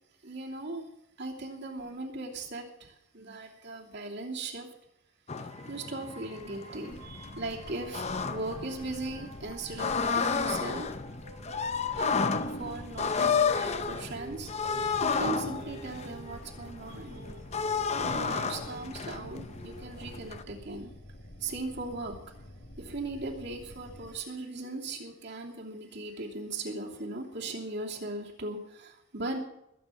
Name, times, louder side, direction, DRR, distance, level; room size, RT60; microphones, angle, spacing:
voice 1, 0.2-0.9 1.2-4.7 5.7-11.0 11.5-12.2 12.5-17.2 18.0-20.9 21.4-22.2 22.8-29.4, right 2 dB, 55° right, -1 dB, 2.9 m, -38 dB
sound 1, 5.3-20.4, left 5 dB, 30° left, 0.7 m, -32 dB
sound 2, 5.5-20.3, right 3 dB, 90° right, 7.5 m, -51 dB
sound 3, 6.9-24.2, left 1 dB, 60° left, 1.7 m, -49 dB
21.0 x 8.9 x 5.7 m, 0.83 s
head